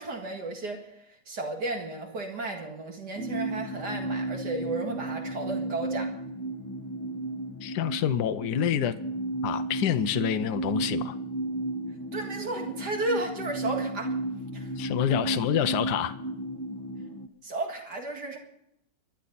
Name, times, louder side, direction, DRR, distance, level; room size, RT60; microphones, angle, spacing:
voice 1, 0.0-6.1 12.1-14.1 14.5-14.7 17.4-18.4, right 2 dB, 65° right, 2 dB, 2.6 m, -33 dB
sound 1, 3.1-17.3, right 2 dB, 15° left, 0.7 m, -33 dB
voice 2, 7.6-8.9 9.4-11.1 14.8-16.1, left 10 dB, 70° left, 9 dB, 1.3 m, -27 dB
25.0 x 11.5 x 4.1 m, 0.78 s
omnidirectional pair, 1.9 m